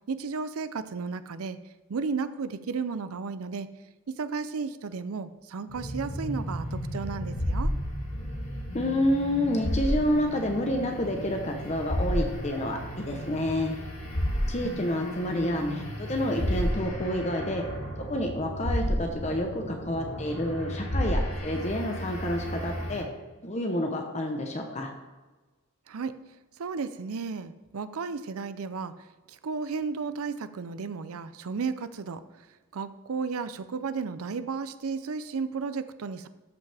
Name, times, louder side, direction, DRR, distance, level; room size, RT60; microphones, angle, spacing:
voice 1, 0.1-1.6 1.9-3.7 4.1-7.7 25.9-26.2 26.6-28.9 29.3-32.2 32.7-36.3, right 5 dB, 90° right, 12 dB, 0.5 m, -33 dB
sound 1, 5.7-23.0, equal, 80° left, 1.8 m, -32 dB
voice 2, 8.7-13.7 14.5-17.6 18.1-23.1 23.4-24.9, left 1 dB, 30° left, 3 dB, 0.8 m, -29 dB
13.0 x 5.7 x 3.4 m, 1.2 s
head